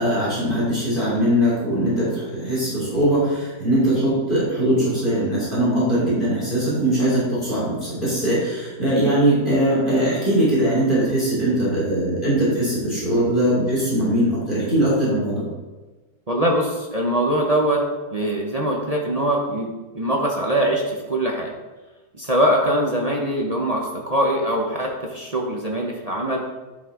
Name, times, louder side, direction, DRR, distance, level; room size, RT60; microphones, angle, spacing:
voice 1, 0.0-15.5, right 1 dB, 30° left, -7 dB, 3.3 m, -21 dB
voice 2, 16.3-17.8 18.1-21.5 22.1-26.4, right 1 dB, 30° right, -1 dB, 0.8 m, -22 dB
11.0 x 5.4 x 3.7 m, 1.2 s
omnidirectional pair, 1.8 m